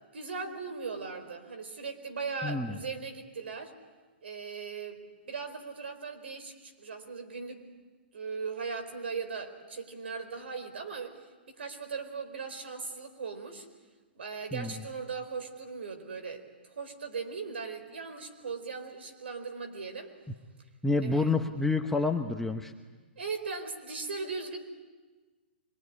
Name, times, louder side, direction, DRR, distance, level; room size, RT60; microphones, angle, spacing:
voice 1, 0.1-3.7 4.2-7.6 8.1-11.2 11.5-13.7 14.1-20.1 21.0-21.3 23.2-24.6, right 5 dB, 75° right, 8 dB, 4.5 m, -38 dB
voice 2, 2.4-2.8 14.5-14.7 20.8-22.7, left 3 dB, 5° left, 5 dB, 1.1 m, -28 dB
25.0 x 23.0 x 9.7 m, 1.3 s
hypercardioid pair, 130°, 6 cm